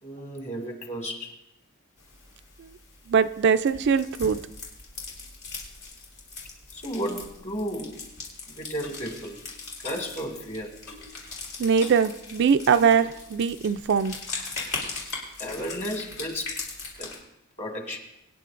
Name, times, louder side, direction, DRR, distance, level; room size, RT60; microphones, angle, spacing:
voice 1, 0.0-1.3 6.7-8.0 8.5-9.4 9.8-10.7 15.4-16.6 17.0-17.1 17.6-18.0, equal, 35° left, 2 dB, 2.2 m, -33 dB
sound 1, 2.0-17.2, left 4 dB, 85° left, 3.7 m, -40 dB
voice 2, 3.1-4.4 11.6-14.2, right 6 dB, 55° right, 10 dB, 0.4 m, -22 dB
Clock, 8.8-9.0 9.8-10.0 10.8-11.1 11.8-12.1 12.8-13.1 13.8-13.9, left 3 dB, 60° left, 5.4 m, -42 dB
24.0 x 9.9 x 2.5 m, 0.86 s
head